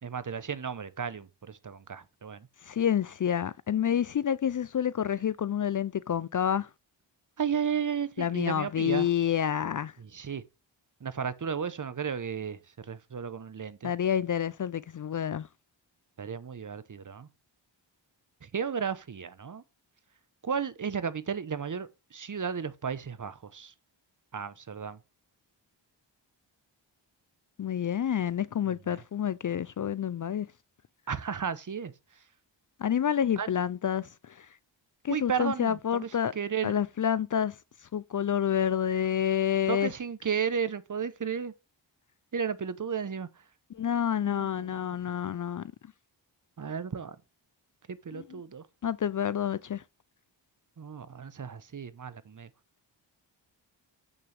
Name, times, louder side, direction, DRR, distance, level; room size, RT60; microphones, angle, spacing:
voice 1, 0.0-2.5 7.4-9.1 10.0-10.4 11.0-13.9 16.2-17.3 18.4-19.6 20.4-23.7 24.3-25.0 28.9-29.0 31.1-31.9 33.4-33.5 35.1-36.7 39.7-41.5 42.3-43.3 44.2-44.8 46.6-47.2 47.9-48.6 50.8-52.5, right 7 dB, 40° right, 0.9 m, -34 dB
voice 2, 2.6-6.7 8.2-9.9 13.8-15.5 27.6-30.5 32.8-34.5 35.0-36.3 36.6-37.5 37.9-39.9 43.7-45.6 48.1-48.4 48.8-49.8, left 9 dB, 45° left, 0.5 m, -28 dB
8.5 x 6.7 x 3.4 m
wide cardioid pair, 80°, 46 cm